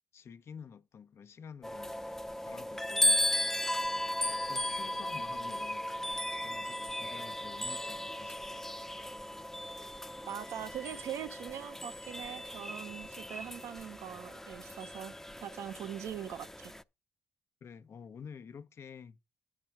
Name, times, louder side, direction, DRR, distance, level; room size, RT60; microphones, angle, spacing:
voice 1, 0.1-2.0 2.4-3.2 3.9-4.1 4.5-5.9 6.4-8.6 17.6-19.2, left 6 dB, 60° left, 0.9 m, -50 dB
sound 1, 1.6-16.8, left 1 dB, 10° left, 0.7 m, -36 dB
voice 2, 10.2-15.1 15.4-16.7, right 10 dB, 75° right, 0.8 m, -42 dB
9.9 x 6.2 x 4.6 m
supercardioid pair, 45°, 5 cm